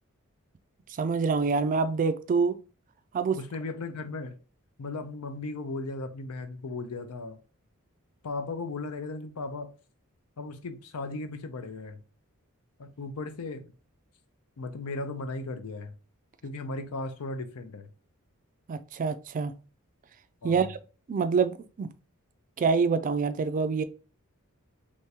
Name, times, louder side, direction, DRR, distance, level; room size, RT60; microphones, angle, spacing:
voice 1, 1.0-2.6 3.1-3.4 18.7-19.5 20.4-20.8 21.1-21.9 22.6-23.8, right 5 dB, 35° right, 0.3 m, -26 dB
voice 2, 3.4-4.3 4.8-7.4 8.2-9.7 10.4-12.0 12.8-13.7 14.6-16.0 16.4-17.9 20.4-20.7, left 3 dB, 85° left, 0.6 m, -36 dB
3.5 x 3.1 x 2.9 m
head